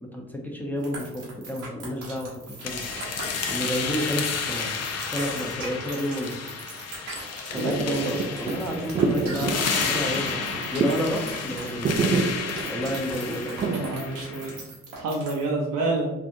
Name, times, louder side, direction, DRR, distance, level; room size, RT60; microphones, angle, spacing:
voice 1, 0.0-2.8 3.5-4.7 5.1-6.5 7.5-10.4 10.7-12.3 12.7-13.7, equal, 5° left, -1 dB, 0.8 m, -30 dB
sound 1, 0.8-15.5, right 3 dB, 85° right, 1.0 m, -40 dB
sound 2, 2.6-14.6, left 5 dB, 45° left, 0.6 m, -32 dB
sound 3, 7.5-14.6, right 4 dB, 25° right, 0.3 m, -29 dB
voice 2, 7.5-8.1 13.7-14.6 15.0-16.1, right 3 dB, 60° right, -3 dB, 0.7 m, -28 dB
3.3 x 2.4 x 2.6 m, 0.96 s
hypercardioid pair, 50°, 35 cm